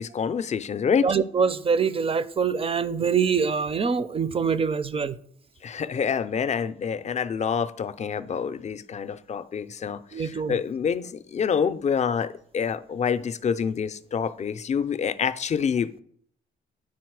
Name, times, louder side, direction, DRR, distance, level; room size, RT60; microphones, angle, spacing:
voice 1, 0.0-1.1 5.6-16.0, left 7 dB, 35° left, 0.5 m, -27 dB
voice 2, 1.0-5.2 10.1-10.6, right 6 dB, 30° right, 0.5 m, -24 dB
9.6 x 4.2 x 4.7 m
cardioid pair, 90°, 20 cm